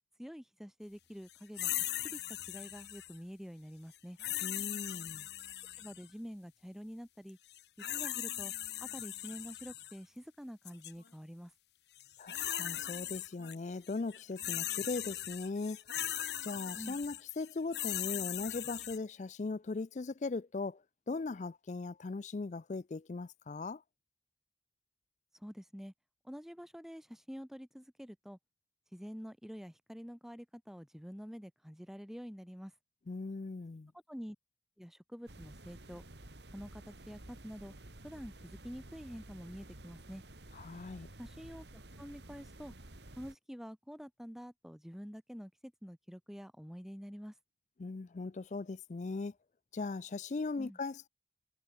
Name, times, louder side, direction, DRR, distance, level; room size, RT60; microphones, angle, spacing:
voice 1, 0.2-1.8 2.0-2.2 2.5-4.2 5.8-7.4 7.8-8.5 8.8-11.5 16.8-17.0 25.3-25.9 26.2-28.4 28.9-32.7 34.1-34.4 34.8-36.0 36.5-37.7 38.0-40.2 41.2-42.7 43.2-47.3 50.6-50.8, equal, ahead, 2.3 m, -47 dB
sound 1, 1.6-3.2 4.2-6.1 7.5-9.9 10.7-10.9 12.0-13.6 13.9-19.0, left 13 dB, 75° left, 1.5 m, -39 dB
voice 2, 4.4-5.3 12.2-15.8 16.4-23.8 33.1-33.9 40.5-41.1 47.8-49.3 49.7-51.1, left 3 dB, 40° left, 0.4 m, -39 dB
sound 2, 35.3-43.3, right 1 dB, 80° right, 3.1 m, -52 dB
head